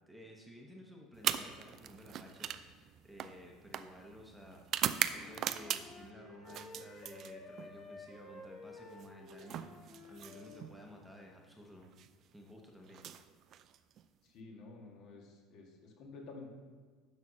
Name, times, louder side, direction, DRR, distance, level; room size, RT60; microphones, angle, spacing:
voice 1, 0.1-11.9 12.3-13.0, equal, ahead, -1 dB, 1.0 m, -54 dB
sound 1, 1.1-6.1 6.5-7.7 8.9-10.7 11.8-12.1 12.9-14.0, right 10 dB, 45° right, 0.4 m, -39 dB
Wind instrument woodwind instrument, 5.1-10.7, left 2 dB, 30° left, 2.1 m, -52 dB
voice 2, 14.2-16.5, left 3 dB, 55° left, 0 dB, 1.8 m, -51 dB
10.5 x 4.3 x 6.1 m, 1.5 s
cardioid pair, 140°, 0 cm